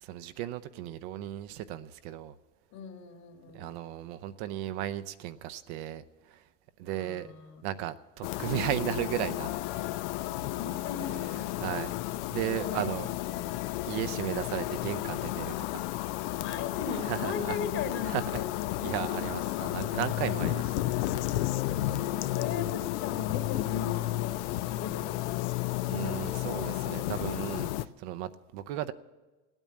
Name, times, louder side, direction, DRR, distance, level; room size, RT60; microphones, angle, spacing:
voice 1, 0.0-2.4 3.5-6.4 6.8-7.3 7.6-9.5 11.6-11.9 12.3-13.1 13.9-15.8 17.1-17.6 18.0-18.4 18.8-20.8 21.3-21.5 25.8-28.9, right 12 dB, 65° right, 11 dB, 0.7 m, -35 dB
voice 2, 2.7-3.7 6.8-7.6 10.5-11.2 12.6-12.9 16.4-18.5 21.7-25.5, left 6 dB, 50° left, 5 dB, 2.1 m, -38 dB
sound 1, 8.2-27.9, left 16 dB, 70° left, 0.6 m, -32 dB
16.5 x 9.0 x 7.5 m, 1.2 s
hypercardioid pair, 95°, 36 cm